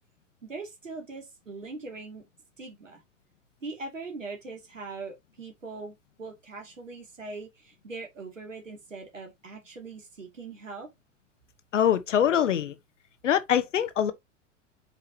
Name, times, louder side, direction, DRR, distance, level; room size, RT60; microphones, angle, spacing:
voice 1, 0.4-2.2 2.6-3.0 3.6-10.9, right 3 dB, 85° right, 2.5 m, -41 dB
voice 2, 11.7-12.7 13.2-14.1, left 9 dB, 75° left, 1.0 m, -23 dB
7.2 x 4.8 x 2.8 m
figure-of-eight pair, 90°, 37 cm